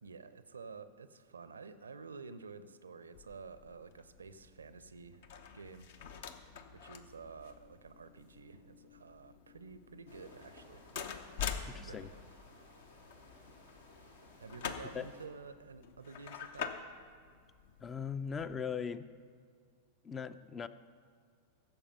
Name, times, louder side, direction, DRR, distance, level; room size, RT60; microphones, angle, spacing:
voice 1, 0.0-5.2 5.5-10.9 11.7-12.4 14.4-16.7, right 4 dB, 75° right, 14 dB, 0.6 m, -51 dB
sound 1, 3.1-18.6, left 7 dB, 55° left, 0.8 m, -47 dB
sound 2, 10.1-15.3, left 2 dB, 70° left, 1.6 m, -58 dB
voice 2, 11.7-12.1 14.9-15.1 17.8-19.1 20.0-20.7, left 6 dB, 20° left, 14 dB, 0.4 m, -39 dB
15.5 x 7.0 x 5.6 m, 2.1 s
figure-of-eight pair, 90°, 0 cm